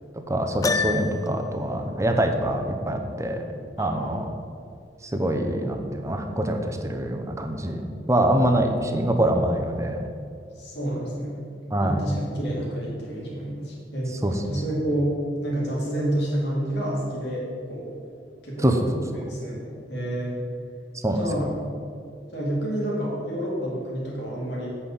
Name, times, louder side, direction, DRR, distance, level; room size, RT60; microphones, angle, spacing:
voice 1, 0.3-3.4 3.8-4.3 5.0-10.0 11.7-12.0 14.2-14.4 18.6-18.9 21.0-21.2, right 1 dB, 15° right, 4 dB, 0.8 m, -24 dB
Piano, 0.6-1.5, left 4 dB, 20° left, 0.3 m, -26 dB
voice 2, 3.8-4.2 10.6-11.4 11.8-14.1 14.5-17.9 18.4-18.7 19.1-19.6 19.9-20.3 21.1-21.5 22.3-24.7, right 1 dB, 70° left, -5 dB, 2.6 m, -29 dB
8.1 x 5.6 x 6.9 m, 2.3 s
head